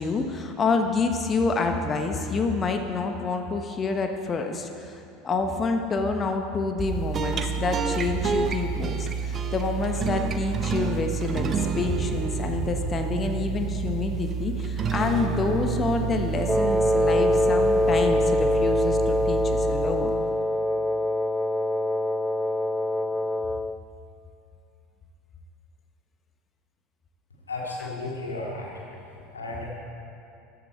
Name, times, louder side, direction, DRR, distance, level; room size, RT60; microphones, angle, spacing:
voice 1, 0.0-4.9 5.2-20.1 27.8-27.9, left 4 dB, 30° left, 5 dB, 1.1 m, -27 dB
sound 1, 6.8-20.4, right 6 dB, 30° right, 0.9 m, -29 dB
Wind instrument woodwind instrument, 16.5-23.8, left 1 dB, ahead, 0.4 m, -24 dB
voice 2, 27.5-28.7 29.3-29.7, left 2 dB, 80° left, -3 dB, 2.4 m, -33 dB
14.5 x 11.0 x 4.5 m, 2.6 s
figure-of-eight pair, 75°, 0 cm